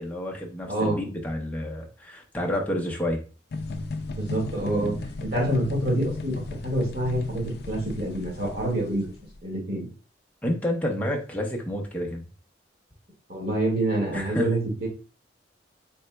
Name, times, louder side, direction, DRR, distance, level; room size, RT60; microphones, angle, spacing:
voice 1, 0.0-3.2 4.8-5.0 10.4-12.2 14.1-14.5, left 1 dB, 10° left, 0 dB, 0.7 m, -29 dB
voice 2, 0.7-1.0 4.2-4.9 5.2-6.3 6.6-9.1 9.4-9.8 13.3-14.9, right 1 dB, 55° right, -4 dB, 1.9 m, -26 dB
sound 1, 3.5-9.4, left 2 dB, 55° left, 0.4 m, -36 dB
4.1 x 3.8 x 2.2 m, 0.36 s
head